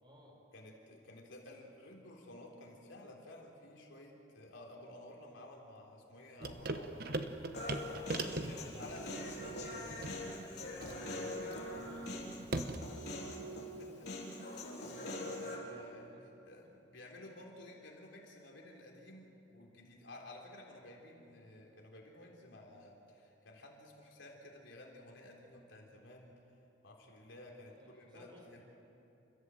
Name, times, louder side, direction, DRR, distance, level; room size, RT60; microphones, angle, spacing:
voice 1, 0.0-0.4 7.9-8.8 9.2-9.3 10.0-13.8 14.5-15.1 15.7-16.0 16.6-16.7 27.6-28.6, equal, 25° right, -1 dB, 4.8 m, -57 dB
voice 2, 0.5-7.9 8.5-10.4 13.6-14.1 14.4-14.5 14.8-26.3 26.8-28.6, left 1 dB, 75° left, -1 dB, 3.7 m, -53 dB
sound 1, 6.4-13.0, right 2 dB, 50° right, 1.1 m, -41 dB
Human voice, 7.5-15.6, left 1 dB, 55° left, 4.1 m, -43 dB
29.5 x 14.5 x 7.8 m, 2.9 s
head